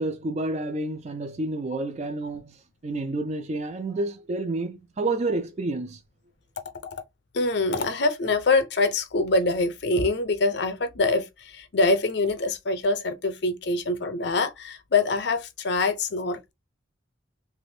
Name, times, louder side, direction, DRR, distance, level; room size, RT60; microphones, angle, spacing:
voice 1, 0.0-6.0, right 2 dB, 35° right, 0.3 m, -29 dB
voice 2, 7.3-16.5, left 3 dB, 55° left, 0.5 m, -24 dB
3.4 x 2.5 x 2.6 m
head